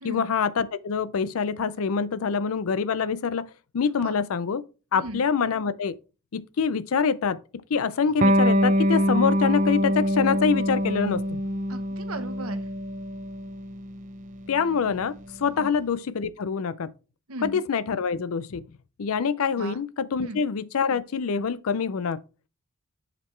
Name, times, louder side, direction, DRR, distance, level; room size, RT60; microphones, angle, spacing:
voice 1, 0.0-3.5 3.7-4.6 4.9-6.0 6.3-7.4 7.7-11.4 14.5-16.9 17.4-18.6 19.0-22.2, left 6 dB, 75° left, 0.5 m, -25 dB
Electric guitar, 8.2-15.4, equal, 35° right, 0.5 m, -25 dB
voice 2, 11.7-12.7 15.6-15.7 17.3-17.6 19.6-19.8 20.2-20.4, right 2 dB, 80° right, 1.0 m, -36 dB
7.4 x 5.1 x 3.2 m
head